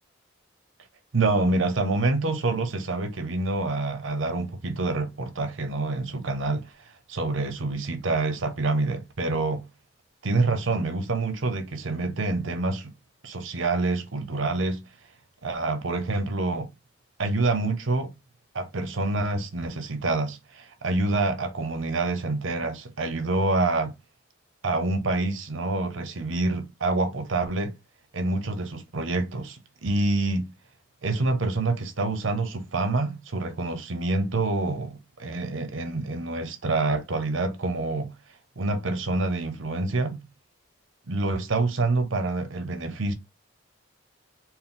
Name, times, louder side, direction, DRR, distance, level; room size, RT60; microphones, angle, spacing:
voice 1, 1.1-6.7 7.1-9.6 10.2-12.9 13.2-14.8 15.4-16.7 17.2-18.1 18.5-23.9 24.6-27.7 28.1-30.5 31.0-38.1 38.6-40.2 41.1-43.1, right 2 dB, 75° right, 0.8 m, -27 dB
4.3 x 2.0 x 3.7 m
head